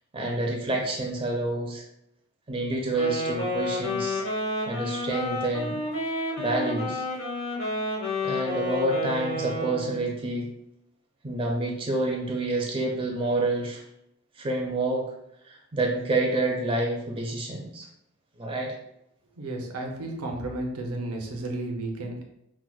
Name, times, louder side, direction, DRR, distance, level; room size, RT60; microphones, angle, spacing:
voice 1, 0.1-1.8 2.5-4.2 4.7-5.8 6.4-7.0 8.2-10.5 11.2-13.8 14.4-15.1 15.4-17.9 18.4-18.7, right 2 dB, 25° right, 0 dB, 0.4 m, -28 dB
Wind instrument woodwind instrument, 2.9-10.1, left 1 dB, 60° left, 1.0 m, -30 dB
voice 2, 19.4-22.2, right 2 dB, 75° right, 1 dB, 0.6 m, -33 dB
4.6 x 2.1 x 2.3 m, 0.79 s
head